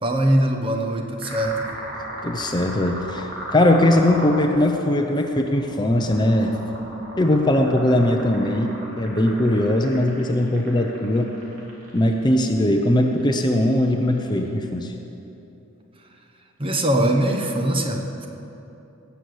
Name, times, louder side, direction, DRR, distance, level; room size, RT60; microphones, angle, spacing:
voice 1, 0.0-1.7 16.6-18.3, right 1 dB, 25° right, 3 dB, 1.1 m, -22 dB
sound 1, 1.2-14.5, right 1 dB, 65° right, 3.4 m, -37 dB
voice 2, 2.2-6.5 7.2-11.3 11.9-14.9, left 1 dB, 20° left, 4 dB, 0.7 m, -20 dB
18.0 x 6.9 x 7.9 m, 3.0 s
head